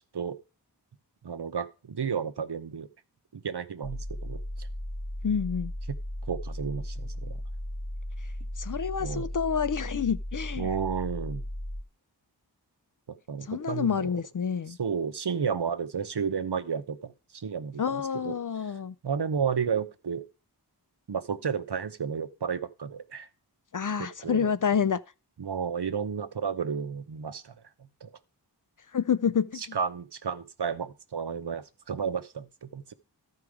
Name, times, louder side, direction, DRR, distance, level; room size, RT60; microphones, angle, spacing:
voice 1, 1.2-2.9 3.3-4.7 5.9-6.0 6.3-7.4 9.0-9.3 10.6-11.5 13.1-14.1 14.8-18.4 19.0-20.2 21.1-23.3 24.0-24.5 25.4-27.5 28.0-28.1 29.5-32.9, right 6 dB, 70° right, 0.8 m, -32 dB
sound 1, 3.8-11.8, left 1 dB, 30° left, 1.0 m, -36 dB
voice 2, 5.2-5.7 8.6-10.7 13.5-14.8 17.8-18.9 23.7-25.0 28.9-29.8, left 7 dB, 50° left, 0.4 m, -28 dB
13.0 x 4.8 x 4.8 m
wide cardioid pair, 45°, 41 cm